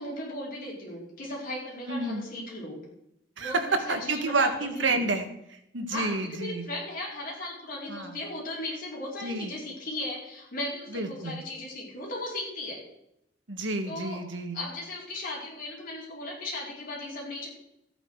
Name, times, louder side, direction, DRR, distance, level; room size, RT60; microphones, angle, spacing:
voice 1, 0.0-2.8 3.4-5.0 5.9-12.8 13.8-14.2 14.5-17.5, left 1 dB, 50° left, -3 dB, 4.7 m, -37 dB
voice 2, 1.9-2.2 3.4-6.7 7.9-8.2 9.2-9.5 10.9-11.4 13.5-14.6, right 3 dB, 80° right, 6 dB, 1.6 m, -29 dB
14.0 x 9.0 x 4.8 m, 0.81 s
head